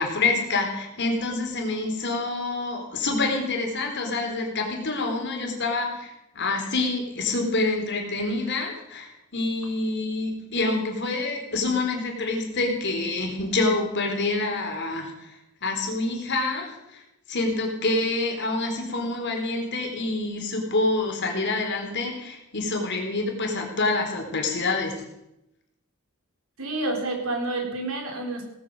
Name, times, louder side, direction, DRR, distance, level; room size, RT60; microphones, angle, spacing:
voice 1, 0.0-17.0 17.3-24.9, left 3 dB, 55° left, 2 dB, 3.8 m, -27 dB
voice 2, 26.6-28.4, right 2 dB, 75° right, 2 dB, 4.1 m, -29 dB
18.0 x 8.6 x 7.7 m, 0.87 s
head